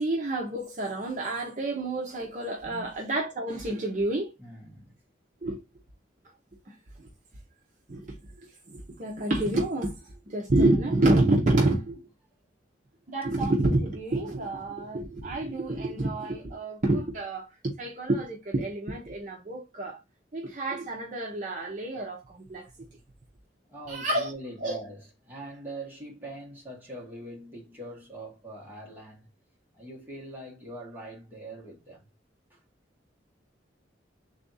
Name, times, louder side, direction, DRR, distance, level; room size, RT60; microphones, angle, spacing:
voice 1, 0.0-4.3 5.4-5.6 6.7-7.1 7.9-8.1 8.7-12.0 13.1-20.0 20.3-22.7 23.9-24.3 24.6-24.8, right 2 dB, 40° right, 0.7 m, -28 dB
voice 2, 4.4-4.9 23.7-29.3 29.7-32.1 32.5-32.6, right 1 dB, 10° right, 1.2 m, -42 dB
3.5 x 2.5 x 3.9 m
head